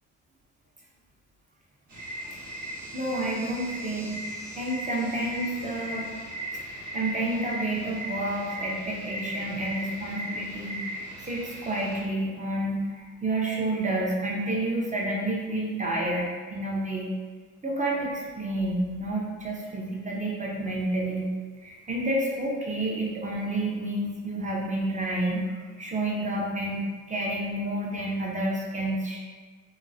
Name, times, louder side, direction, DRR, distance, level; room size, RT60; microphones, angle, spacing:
sound 1, 1.9-12.0, right 1 dB, 55° right, 1.1 m, -37 dB
voice 1, 2.9-6.1 6.7-17.1 17.6-21.3 21.6-29.2, right 1 dB, 20° right, -3 dB, 0.7 m, -30 dB
2.9 x 2.2 x 2.6 m, 1.5 s
supercardioid pair, 60°, 36 cm